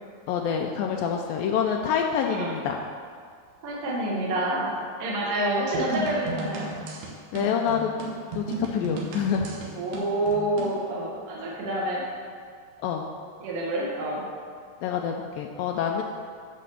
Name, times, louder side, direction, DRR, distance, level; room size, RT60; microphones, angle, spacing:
voice 1, 0.3-2.8 7.3-7.9 8.3-9.5 12.8-13.1 14.8-16.0, left 7 dB, 85° left, 1 dB, 2.0 m, -26 dB
voice 2, 2.2-2.6 3.6-4.7 5.0-6.7 9.7-12.0 13.4-14.2, right 1 dB, 55° right, -6 dB, 1.6 m, -28 dB
sound 1, 5.7-10.8, right 3 dB, 85° right, 3.2 m, -35 dB
11.0 x 4.3 x 6.9 m, 2.1 s
omnidirectional pair, 4.6 m